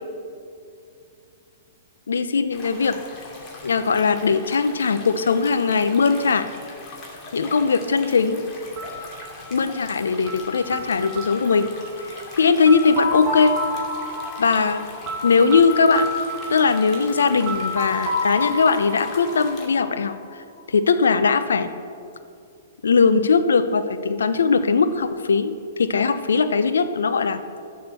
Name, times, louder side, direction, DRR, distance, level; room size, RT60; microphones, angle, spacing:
voice 1, 2.1-3.0 3.6-6.5 7.3-8.4 9.5-11.7 12.1-13.5 14.4-14.8 15.2-16.1 16.5-20.2 20.7-21.7 22.8-27.4, left 5 dB, 80° left, 11 dB, 0.7 m, -20 dB
sound 1, 2.5-19.7, left 2 dB, 35° left, 2.5 m, -41 dB
sound 2, 8.8-20.5, left 1 dB, 15° right, 1.8 m, -31 dB
12.5 x 6.6 x 6.7 m, 2.4 s
hypercardioid pair, 125°, 0 cm